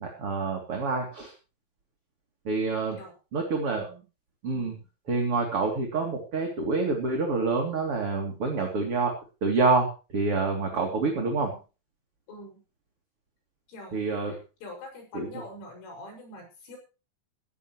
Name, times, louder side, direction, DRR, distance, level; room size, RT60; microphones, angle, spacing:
voice 1, 0.0-1.3 2.5-3.0 3.3-3.9 4.4-4.7 5.1-11.5 13.9-14.4 15.1-15.3, right 3 dB, 35° right, 1 dB, 3.4 m, -27 dB
voice 2, 3.7-4.1 10.7-11.3 12.3-12.6 13.7-16.8, left 1 dB, 85° left, 2 dB, 9.0 m, -45 dB
17.0 x 16.0 x 3.2 m, 0.33 s
omnidirectional pair, 5.5 m